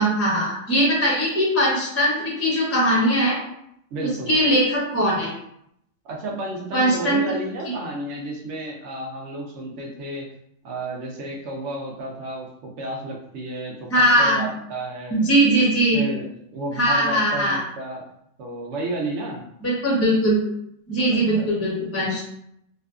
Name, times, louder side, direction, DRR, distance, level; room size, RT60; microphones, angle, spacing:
voice 1, 0.0-3.4 4.3-5.3 6.7-7.2 13.9-14.4 15.1-16.0 16.8-17.6 19.6-20.4 20.9-22.2, right 1 dB, 20° left, -5 dB, 0.4 m, -20 dB
voice 2, 3.9-4.4 6.0-10.3 10.6-15.2 15.9-18.0 18.4-19.4 21.3-21.5, right 2 dB, 70° right, -1 dB, 0.9 m, -32 dB
2.5 x 2.4 x 2.3 m, 0.74 s
omnidirectional pair, 1.3 m